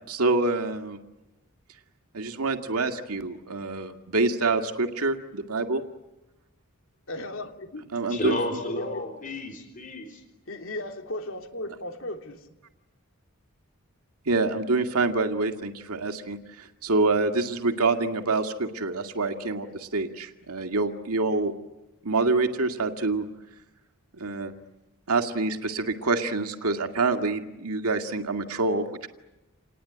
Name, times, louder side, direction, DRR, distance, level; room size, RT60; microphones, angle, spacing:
voice 1, 0.1-1.0 2.1-5.8 7.9-8.4 14.3-21.5 22.0-23.3 24.2-24.5 25.1-29.1, right 3 dB, 90° right, 2.1 m, -26 dB
voice 2, 7.1-7.8 8.4-9.0 10.5-12.5, left 1 dB, 65° left, 3.2 m, -36 dB
voice 3, 8.1-10.2, left 1 dB, 35° left, 3.9 m, -32 dB
28.5 x 20.0 x 9.9 m
head